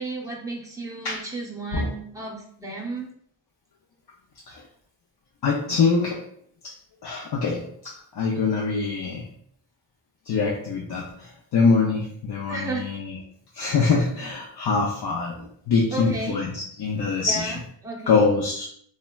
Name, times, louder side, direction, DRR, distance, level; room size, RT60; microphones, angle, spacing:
voice 1, 0.0-3.1 12.5-12.9 15.9-16.4 17.3-17.6 17.8-18.3, right 2 dB, 10° right, -2 dB, 0.7 m, -33 dB
voice 2, 5.4-6.2 6.6-6.7 7.0-9.3 10.3-13.2 13.5-17.6 18.1-18.7, left 4 dB, 60° left, -3 dB, 0.6 m, -24 dB
3.1 x 2.2 x 2.2 m, 0.64 s
wide cardioid pair, 85°, 45 cm